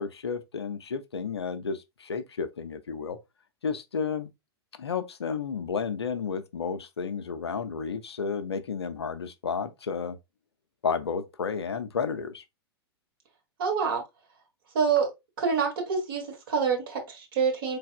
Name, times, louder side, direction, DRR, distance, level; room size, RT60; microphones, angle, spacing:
voice 1, 0.0-3.2 3.6-4.3 4.8-10.2 10.8-12.4, left 5 dB, 75° left, 0.5 m, -32 dB
voice 2, 13.6-14.0 14.7-15.1 15.4-17.8, right 6 dB, 60° right, 1.4 m, -26 dB
4.0 x 3.3 x 2.3 m
figure-of-eight pair, 95°, 14 cm